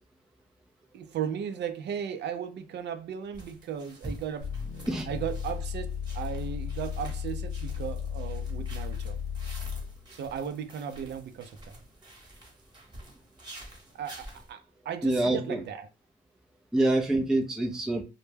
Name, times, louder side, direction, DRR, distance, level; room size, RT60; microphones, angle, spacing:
voice 1, 0.9-4.5 5.1-9.2 10.1-11.8 13.9-15.9, right 8 dB, 60° right, 0.4 m, -36 dB
sound 1, 3.3-14.5, right 1 dB, 20° right, 1.0 m, -48 dB
sound 2, 4.4-10.0, left 7 dB, 55° left, 0.8 m, -35 dB
voice 2, 15.0-15.6 16.7-18.0, right 1 dB, 5° right, 0.4 m, -26 dB
2.1 x 2.1 x 3.2 m
cardioid pair, 90°, 20 cm